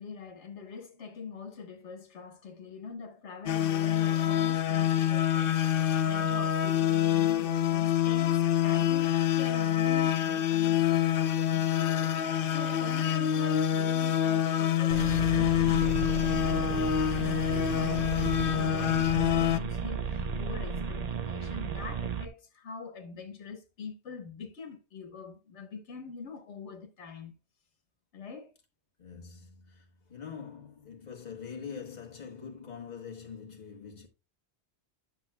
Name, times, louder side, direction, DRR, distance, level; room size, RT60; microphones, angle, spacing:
voice 1, 0.0-27.3 28.1-28.5, left 5 dB, 90° left, 1.5 m, -44 dB
sound 1, 3.5-19.6, left 10 dB, 60° left, 0.7 m, -26 dB
sound 2, 14.9-22.3, right 5 dB, 40° right, 0.6 m, -34 dB
voice 2, 29.0-34.1, left 6 dB, 40° left, 1.6 m, -44 dB
10.5 x 7.1 x 2.2 m
omnidirectional pair, 1.1 m